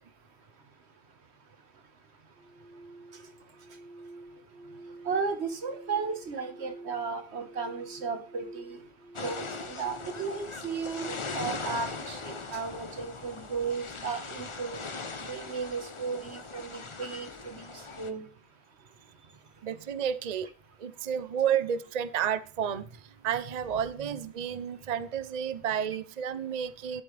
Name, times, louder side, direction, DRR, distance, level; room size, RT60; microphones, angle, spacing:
sound 1, 2.3-13.3, right 2 dB, 50° left, 3.6 m, -49 dB
voice 1, 5.0-8.8 9.2-14.8 15.2-18.3, right 5 dB, 90° right, 8 dB, 1.7 m, -35 dB
sound 2, 9.1-18.1, left 4 dB, 30° left, 0.8 m, -40 dB
voice 2, 19.6-20.5 20.8-22.8 23.2-27.0, right 8 dB, 45° right, 14 dB, 0.7 m, -31 dB
12.0 x 8.2 x 3.4 m, 0.41 s
omnidirectional pair, 1.1 m